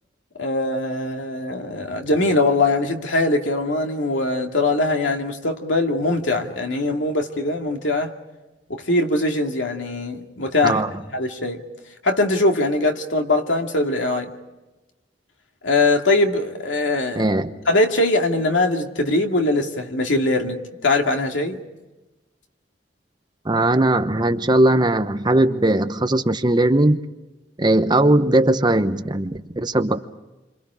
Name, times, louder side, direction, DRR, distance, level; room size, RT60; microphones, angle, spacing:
voice 1, 0.4-8.1 8.7-10.8 11.1-11.6 12.0-14.3 15.6-17.2 17.7-21.6, left 2 dB, 85° left, 2.4 m, -21 dB
voice 2, 17.1-17.5 23.4-27.0 27.6-30.0, right 1 dB, 25° right, 0.9 m, -19 dB
29.0 x 26.5 x 4.9 m
head